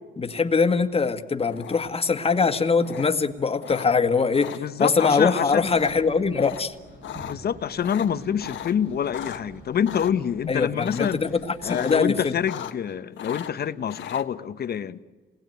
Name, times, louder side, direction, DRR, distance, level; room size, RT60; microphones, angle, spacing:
voice 1, 0.2-6.7 10.5-12.4, left 5 dB, 30° left, 1.8 m, -23 dB
sound 1, 1.5-2.0 2.8-3.0 3.6-3.9 4.3-4.6 4.9-5.2 5.6-5.9 6.3-6.6 6.9-7.3 7.8-9.4 9.8-10.1 10.8-11.3 11.6-12.0 12.3-12.9 13.2-14.2, left 10 dB, 70° left, 1.5 m, -37 dB
voice 2, 4.5-5.7 7.2-11.2 11.6-15.0, left 8 dB, 50° left, 1.0 m, -26 dB
sound 2, 5.5-12.5, right 2 dB, 45° right, 6.7 m, -48 dB
28.0 x 20.0 x 9.3 m
cardioid pair, 90°, 20 cm